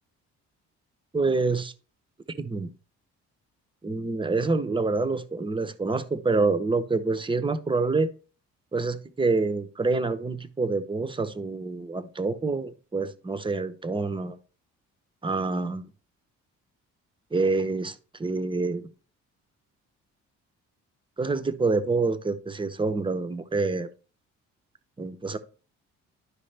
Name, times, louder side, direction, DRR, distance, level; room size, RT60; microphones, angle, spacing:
voice 1, 1.1-1.7 2.4-2.7 3.8-8.1 8.7-14.4 15.2-15.8 17.3-18.9 21.2-23.9 25.0-25.4, right 3 dB, 15° right, 0.8 m, -27 dB
11.5 x 4.8 x 3.3 m
cardioid pair, 90°, 30 cm